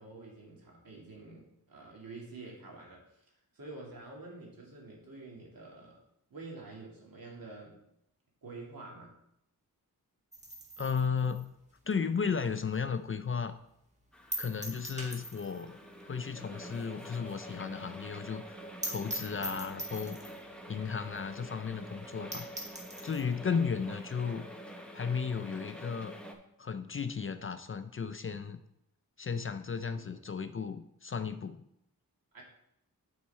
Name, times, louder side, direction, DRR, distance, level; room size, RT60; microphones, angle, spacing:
voice 1, 0.0-3.3 3.5-6.0 6.3-7.8 8.4-9.2 19.3-19.5 23.8-23.9 29.9-30.2 32.3-32.4, right 3 dB, 70° right, -2 dB, 2.4 m, -48 dB
sound 1, 10.3-13.0 13.3-13.4 13.7-13.8 14.3-15.7 16.0-16.1 16.4-16.5 16.9-17.0 17.2-17.3 17.6-17.7 18.0-18.1 18.5-18.6 18.8-20.5 21.2-21.3 21.6-21.7 22.0-22.1 22.3-23.3, right 1 dB, 20° right, 1.5 m, -41 dB
voice 2, 10.8-11.5 11.9-13.5 14.4-15.8 16.1-20.3 20.7-22.5 23.0-24.5 24.9-26.1 26.6-28.6 29.2-31.6, left 6 dB, 35° left, 10 dB, 0.4 m, -34 dB
sound 2, 14.1-26.3, equal, 5° left, 0.9 m, -47 dB
8.8 x 4.7 x 4.3 m, 0.77 s
wide cardioid pair, 95°, 36 cm